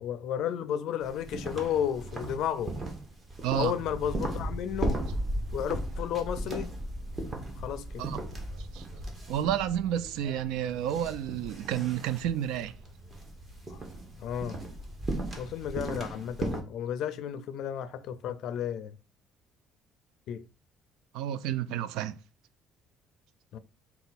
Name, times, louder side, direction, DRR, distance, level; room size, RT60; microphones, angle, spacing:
voice 1, 0.0-2.8 3.5-5.0 5.5-6.7 7.6-8.0 13.7-13.8 14.2-14.6 15.4-19.0 20.3-20.4 23.5-23.6, left 9 dB, 60° left, 0.4 m, -33 dB
sound 1, 1.0-16.6, right 2 dB, 20° right, 0.9 m, -39 dB
sound 2, 3.8-15.9, equal, 40° right, 1.1 m, -39 dB
voice 2, 9.3-12.7 21.1-22.2, right 11 dB, 85° right, 0.3 m, -30 dB
4.4 x 2.3 x 4.0 m
cardioid pair, 155°, 0 cm